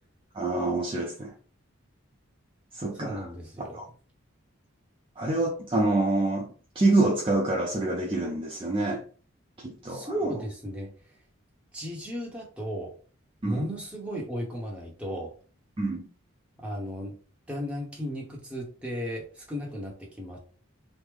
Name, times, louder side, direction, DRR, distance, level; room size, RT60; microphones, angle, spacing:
voice 1, 0.3-1.3 2.7-3.3 3.7-3.9 5.2-9.0 9.6-10.1 13.4-13.6 15.8-16.1, right 2 dB, 25° right, 0.4 m, -26 dB
voice 2, 2.9-3.8 9.9-10.9 11.7-12.9 13.4-15.3 16.6-17.1 17.5-20.4, equal, 5° right, 0.9 m, -35 dB
3.1 x 2.1 x 3.6 m
head